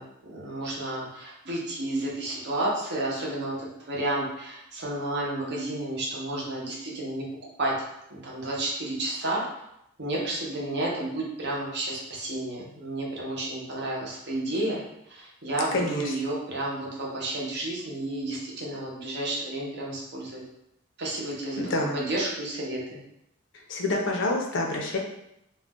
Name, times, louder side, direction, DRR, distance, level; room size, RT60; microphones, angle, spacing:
voice 1, 0.0-7.3 7.6-7.7 8.1-9.4 10.0-14.8 15.1-20.4 21.0-23.0, right 1 dB, 55° right, -3 dB, 0.7 m, -31 dB
voice 2, 15.7-16.1 21.6-22.0 23.5-25.0, left 2 dB, 60° left, 1 dB, 0.5 m, -27 dB
2.4 x 2.1 x 3.5 m, 0.80 s
head